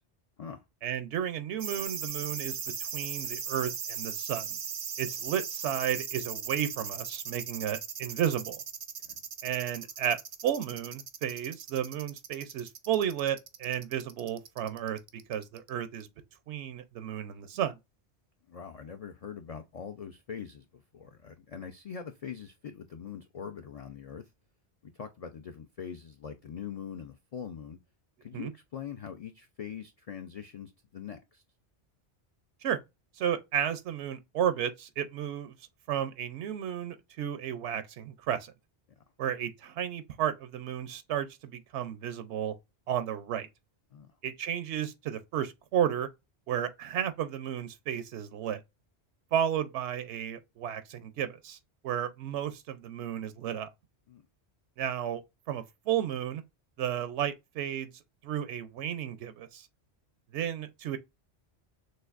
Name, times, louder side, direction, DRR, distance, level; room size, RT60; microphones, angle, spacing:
voice 1, 0.8-4.6 5.0-8.6 9.4-10.2 10.4-15.0 15.3-16.1 16.5-17.8 28.3-28.5 32.6-32.8 33.2-35.5 35.9-38.5 39.2-42.5 42.9-43.5 44.2-46.1 46.5-48.6 49.3-51.6 51.8-53.7 54.8-55.2 55.5-56.4 56.8-59.7 60.3-61.0, right 9 dB, 90° right, 0.9 m, -33 dB
sound 1, 1.6-15.7 16.0-16.1, right 7 dB, 50° right, 0.5 m, -38 dB
voice 2, 18.5-24.2 24.8-27.8 28.2-31.4 43.9-44.1 54.1-54.2, left 7 dB, 60° left, 0.4 m, -43 dB
6.4 x 2.5 x 2.4 m
omnidirectional pair, 1.1 m